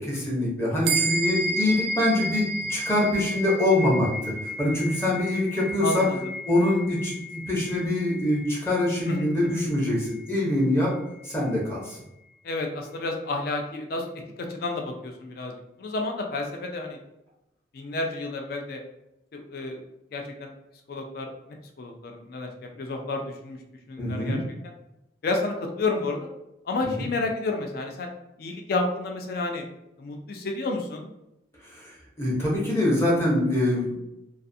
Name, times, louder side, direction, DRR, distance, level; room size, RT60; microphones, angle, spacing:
voice 1, 0.0-2.4 2.7-4.3 4.6-6.1 6.5-10.9 11.2-12.0 24.0-24.4 26.8-26.9 31.8-31.9 32.2-34.0, left 1 dB, 15° left, -5 dB, 0.6 m, -24 dB
sound 1, 0.8-10.6, equal, 65° right, 0.3 m, -32 dB
voice 2, 5.8-6.3 9.0-9.6 12.4-14.1 14.4-15.5 15.8-17.0 17.7-18.8 19.3-19.8 20.1-20.5 20.9-21.3 21.8-22.5 22.8-23.6 23.9-24.4 25.2-26.3 26.7-28.1 28.4-29.6 30.0-31.1, left 2 dB, 55° left, 3 dB, 0.3 m, -30 dB
2.4 x 2.4 x 2.6 m, 0.87 s
head